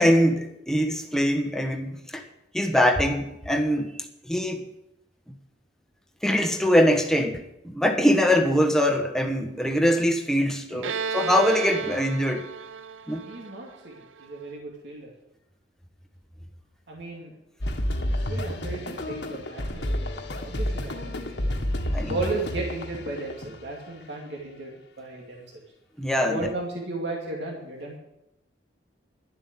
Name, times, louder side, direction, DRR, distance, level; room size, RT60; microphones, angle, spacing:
voice 1, 0.0-2.2 2.5-4.6 5.3-5.4 6.2-12.5 13.1-13.2 21.9-22.2 26.0-26.5, equal, 5° left, 4 dB, 1.2 m, -23 dB
Bowed string instrument, 10.8-14.4, right 6 dB, 90° right, 0.5 m, -33 dB
voice 2, 13.2-15.1 16.9-17.4 18.2-21.6 22.1-25.6 26.3-28.0, right 2 dB, 65° right, -2 dB, 2.4 m, -35 dB
sound 1, 17.6-23.7, left 1 dB, 65° left, 1.5 m, -30 dB
11.5 x 7.7 x 8.2 m, 0.86 s
head